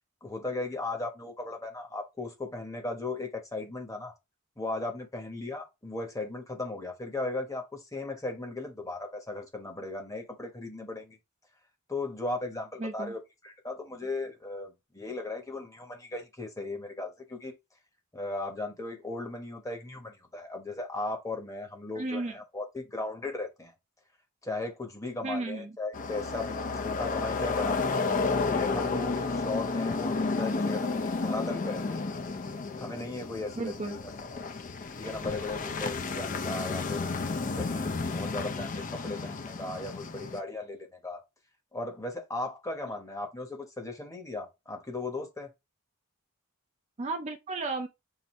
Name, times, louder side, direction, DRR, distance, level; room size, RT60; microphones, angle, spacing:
voice 1, 0.2-4.1 4.6-11.2 11.9-17.5 18.1-23.7 24.4-28.0 28.5-32.0 32.8-34.0 35.0-37.1 37.5-41.2 41.7-45.5, left 2 dB, 15° left, 1.0 m, -37 dB
voice 2, 12.8-13.1 21.9-22.4 25.2-25.8 33.6-34.0 47.0-47.9, right 3 dB, 30° right, 0.5 m, -34 dB
sound 1, 25.9-40.4, left 3 dB, 35° left, 0.5 m, -32 dB
5.7 x 2.6 x 3.1 m
head